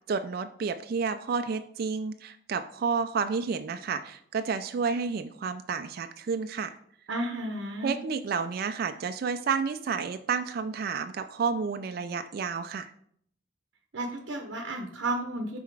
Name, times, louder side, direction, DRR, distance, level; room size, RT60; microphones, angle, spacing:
voice 1, 0.1-6.8 7.8-12.9, right 5 dB, 50° right, 9 dB, 0.3 m, -30 dB
voice 2, 7.1-7.9 13.9-15.6, right 1 dB, 70° right, 4 dB, 0.7 m, -32 dB
5.7 x 4.2 x 4.7 m, 0.65 s
head